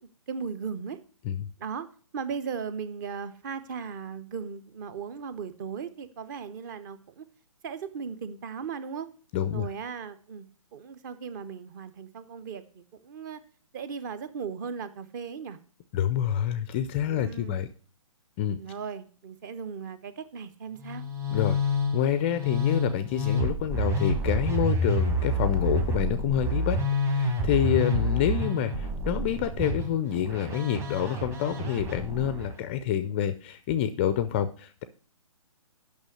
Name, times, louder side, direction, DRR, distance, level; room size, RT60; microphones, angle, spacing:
voice 1, 0.3-1.0 1.6-1.9 2.1-7.2 7.6-9.1 9.5-13.4 13.7-15.6 17.0-17.6 18.6-21.0, right 6 dB, 35° right, 13 dB, 0.9 m, -37 dB
voice 2, 9.3-9.7 15.9-17.7 18.4-18.6 21.3-21.6 21.9-26.8 27.1-34.8, left 10 dB, 20° left, 12 dB, 0.4 m, -27 dB
Musical instrument, 20.8-32.6, left 1 dB, 15° right, 1.3 m, -28 dB
8.8 x 6.1 x 6.4 m, 0.41 s
figure-of-eight pair, 135°, 18 cm